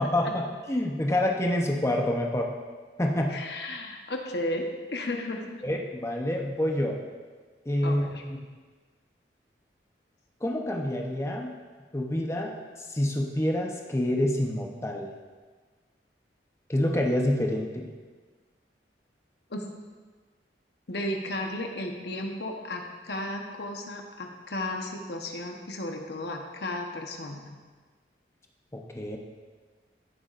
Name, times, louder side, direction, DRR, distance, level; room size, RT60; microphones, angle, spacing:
voice 1, 0.0-2.5 3.0-3.4 5.6-7.0 7.7-8.4 10.4-11.5 11.9-15.1 16.7-17.9 28.7-29.2, left 1 dB, 15° left, 1 dB, 0.8 m, -27 dB
voice 2, 3.3-5.6 7.8-8.2 19.5-19.6 20.9-27.6, left 1 dB, 70° left, 2 dB, 1.1 m, -34 dB
14.5 x 7.0 x 2.6 m, 1.4 s
head